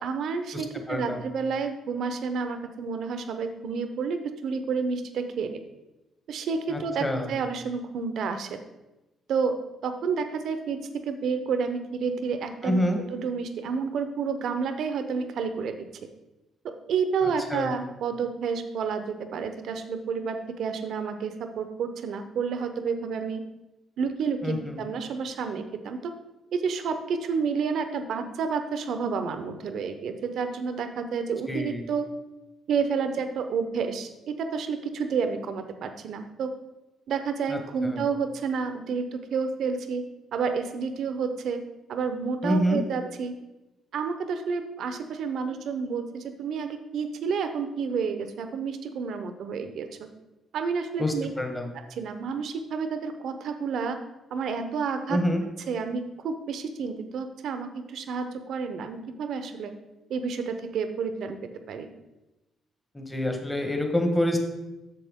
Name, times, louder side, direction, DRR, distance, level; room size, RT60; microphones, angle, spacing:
voice 1, 0.0-5.6 6.3-8.6 9.3-9.6 9.8-15.9 16.9-23.4 24.0-26.1 26.5-32.1 32.7-36.5 37.1-40.0 40.3-41.6 41.9-43.4 43.9-49.9 50.5-51.3 51.9-54.0 54.3-55.2 55.7-59.7 60.1-61.4 61.7-61.9, right 5 dB, 70° right, 8 dB, 0.8 m, -30 dB
voice 2, 0.9-1.2 6.7-7.3 12.6-13.0 17.5-17.7 24.4-24.8 31.5-31.8 37.5-38.0 42.4-42.8 51.0-51.7 55.1-55.4 62.9-64.4, left 1 dB, 15° left, 4 dB, 1.3 m, -27 dB
7.7 x 6.7 x 3.7 m, 1.0 s
cardioid pair, 90°, 0 cm